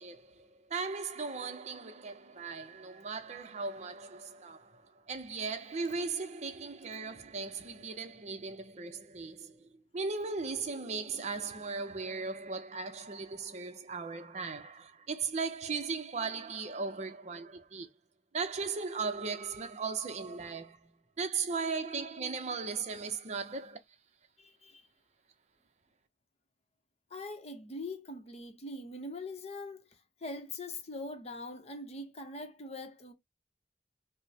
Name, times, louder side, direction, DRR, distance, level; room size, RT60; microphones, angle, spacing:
voice 1, 0.0-17.9 18.3-20.9 21.2-23.8, right 4 dB, 40° right, 0.6 m, -37 dB
voice 2, 24.4-24.8 27.1-29.8 30.2-33.1, left 2 dB, 35° left, 0.8 m, -42 dB
4.9 x 2.0 x 2.7 m
head